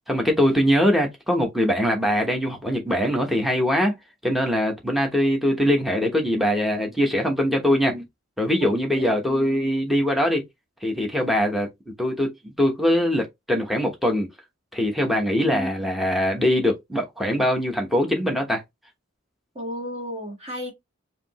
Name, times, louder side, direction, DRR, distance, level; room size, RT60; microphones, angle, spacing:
voice 1, 0.1-3.9 4.2-8.0 8.4-10.4 10.8-11.7 12.0-14.3 14.7-18.6, equal, ahead, 1.0 m, -22 dB
voice 2, 15.3-15.7 19.5-20.7, equal, 30° right, 1.6 m, -33 dB
5.0 x 2.8 x 3.0 m
head